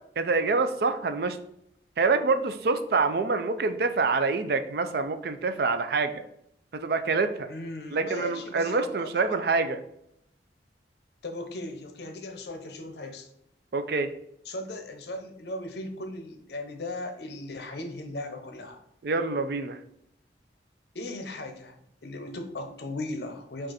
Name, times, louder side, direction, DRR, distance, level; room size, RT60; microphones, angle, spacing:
voice 1, 0.2-1.4 2.0-6.2 6.7-7.5 7.9-9.8 13.7-14.1 19.0-19.8, right 4 dB, 55° right, 9 dB, 0.4 m, -26 dB
voice 2, 7.5-9.5 11.2-13.3 14.4-18.8 20.9-21.8 22.0-23.7, left 1 dB, 60° left, 6 dB, 0.7 m, -37 dB
5.0 x 2.5 x 4.1 m, 0.75 s
head